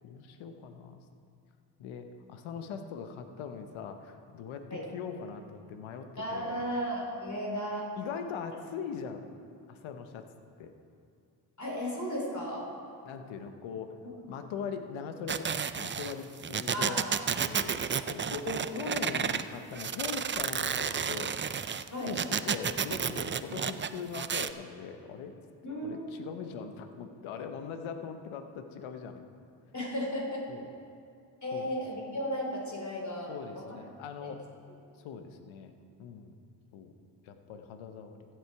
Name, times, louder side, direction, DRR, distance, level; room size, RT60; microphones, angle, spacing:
voice 1, 0.0-1.0 1.8-6.6 8.0-9.2 9.7-10.3 10.6-10.7 13.0-14.0 14.3-17.0 17.4-21.4 21.7-25.3 25.8-29.2 30.5-30.7 31.5-31.7 33.3-34.4 35.0-35.7 36.0-36.4 36.7-36.9 37.2-38.3, left 6 dB, 80° left, 7 dB, 1.0 m, -41 dB
voice 2, 6.2-7.8 11.6-12.7 16.7-17.2 18.4-18.6 19.0-19.2 21.9-22.1 23.4-23.5 25.6-26.3 29.7-30.4 31.4-33.8 34.2-34.3, equal, 35° left, -2 dB, 3.2 m, -35 dB
sound 1, 15.3-19.4 19.7-24.5, right 7 dB, 25° right, 0.4 m, -31 dB
15.0 x 7.9 x 4.7 m, 2.4 s
supercardioid pair, 45°, 47 cm